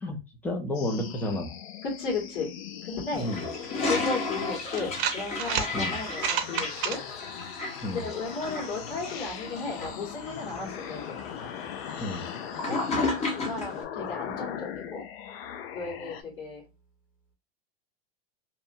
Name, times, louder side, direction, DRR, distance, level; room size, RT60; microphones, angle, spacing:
voice 1, 0.0-1.5 3.1-3.5 5.7-6.0 7.8-8.1 12.0-12.3, left 1 dB, 5° left, 5 dB, 0.4 m, -31 dB
sound 1, 0.7-16.2, left 9 dB, 80° left, 0.5 m, -40 dB
voice 2, 1.8-2.5 2.9-3.3 3.9-7.0 7.9-11.1 12.6-12.8 13.4-15.0 15.7-16.6, left 4 dB, 60° left, -4 dB, 1.6 m, -34 dB
Toilet flush, 3.1-13.8, left 3 dB, 20° left, 0.8 m, -34 dB
sound 2, 4.8-5.7 6.1-7.0, right 8 dB, 65° right, 0.6 m, -29 dB
2.8 x 2.1 x 2.6 m, 0.25 s
supercardioid pair, 130°, 30 cm